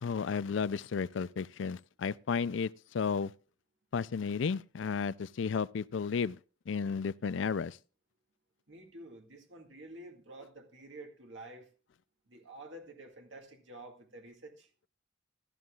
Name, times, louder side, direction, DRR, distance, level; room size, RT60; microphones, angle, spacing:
voice 1, 0.0-3.3 3.9-6.4 6.7-7.8, left 5 dB, 70° left, 0.4 m, -33 dB
voice 2, 8.7-11.7 12.3-14.7, right 1 dB, 65° right, 2.1 m, -50 dB
15.0 x 12.5 x 2.4 m
head